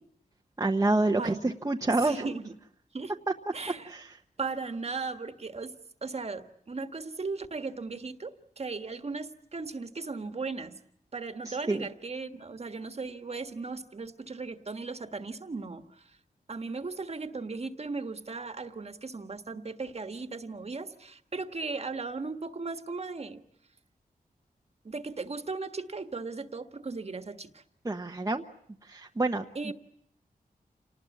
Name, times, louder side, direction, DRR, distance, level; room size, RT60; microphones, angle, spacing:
voice 1, 0.6-2.3 3.9-4.1 11.7-11.8 27.8-28.4 28.9-29.4, right 2 dB, 20° right, 3 dB, 1.0 m, -27 dB
voice 2, 1.2-1.5 1.9-2.5 2.9-3.1 3.5-3.9 4.4-5.7 6.0-10.8 11.1-16.2 16.5-23.4 24.8-27.6 29.5-29.7, right 4 dB, 40° right, 8 dB, 1.6 m, -37 dB
28.0 x 19.5 x 9.6 m, 0.71 s
wide cardioid pair, 125°, 16 cm